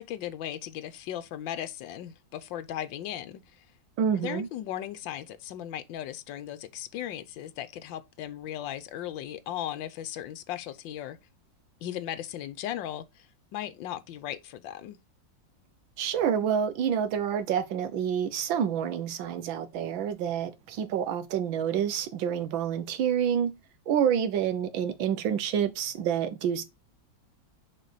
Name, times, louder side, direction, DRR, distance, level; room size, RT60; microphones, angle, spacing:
voice 1, 0.0-3.7 4.2-11.2 11.8-15.0, left 11 dB, 80° left, 1.5 m, -37 dB
voice 2, 4.0-4.5 16.0-23.5 23.9-26.6, right 8 dB, 85° right, 1.7 m, -28 dB
6.7 x 5.0 x 4.1 m
omnidirectional pair, 2.0 m